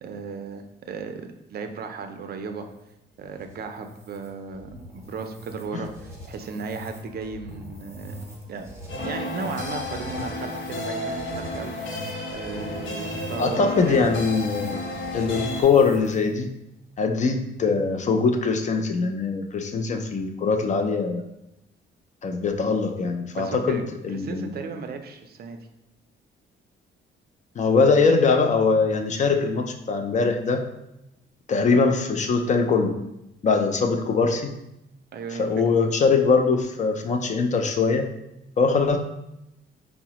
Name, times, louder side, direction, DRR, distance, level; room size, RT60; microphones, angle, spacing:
voice 1, 0.0-2.7 3.2-8.2 8.5-8.7 9.0-12.0 12.3-14.1 23.4-23.8 24.1-25.6 35.1-35.5, right 5 dB, 50° right, 6 dB, 0.4 m, -35 dB
sound 1, 2.5-16.4, equal, 15° right, 0.7 m, -42 dB
sound 2, 8.9-15.6, left 1 dB, 65° left, 0.8 m, -32 dB
voice 2, 13.4-14.8 15.1-16.5 17.0-21.2 22.2-24.5 27.6-30.6 31.5-33.0 33.4-34.6 35.3-38.1 38.6-39.0, left 4 dB, 35° left, 5 dB, 0.4 m, -22 dB
4.6 x 2.0 x 2.8 m, 0.87 s
cardioid pair, 125°, 21 cm